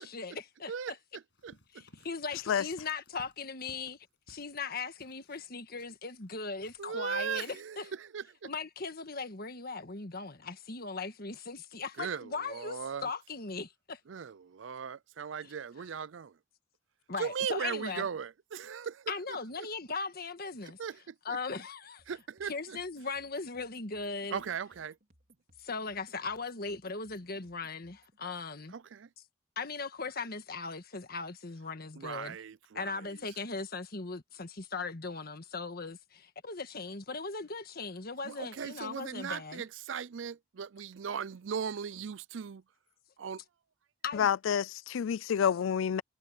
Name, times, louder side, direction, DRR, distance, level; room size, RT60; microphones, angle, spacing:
voice 1, 0.0-0.9 1.7-4.0 4.3-7.9 8.4-14.0 15.4-15.5 17.1-18.1 19.1-20.8 21.2-22.0 22.4-24.4 25.6-28.7 29.5-32.4 32.7-39.6 44.0-44.3, left 4 dB, 50° left, 1.6 m, -39 dB
voice 2, 0.7-1.8 6.8-8.5 12.0-13.1 14.1-16.3 17.2-19.7 20.6-21.4 22.1-22.8 24.3-25.0 28.7-29.1 32.0-33.2 38.2-42.6 43.2-43.4, right 7 dB, 75° right, 0.5 m, -38 dB
Run, 1.3-4.6 5.0-6.4 6.6-6.8, left 1 dB, 70° left, 6.5 m, -60 dB
sound 1, 22.0-28.2, right 1 dB, 50° right, 4.5 m, -66 dB
voice 3, 44.1-46.0, left 8 dB, 90° left, 0.4 m, -28 dB
head